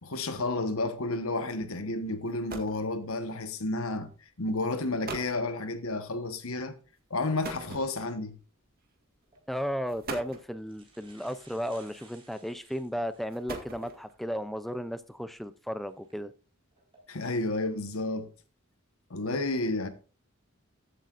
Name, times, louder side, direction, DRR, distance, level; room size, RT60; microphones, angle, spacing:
voice 1, 0.0-4.1 4.4-6.8 7.1-8.4 17.1-18.3 19.1-19.9, left 2 dB, 70° left, 1.2 m, -31 dB
sound 1, 1.9-2.0 2.3-2.9 3.9-4.1 4.7-4.8 5.0-5.4 7.4-8.3 9.2-9.4 9.9-10.5 11.8-12.3 13.1-14.2, right 3 dB, 45° right, 1.8 m, -41 dB
sound 2, 9.2-9.4 10.2-10.3 10.6-13.4 13.9-14.0 15.9-16.1 16.7-17.0, right 3 dB, 25° right, 4.0 m, -58 dB
voice 2, 9.5-16.3, equal, ahead, 0.4 m, -34 dB
14.5 x 8.4 x 2.5 m
head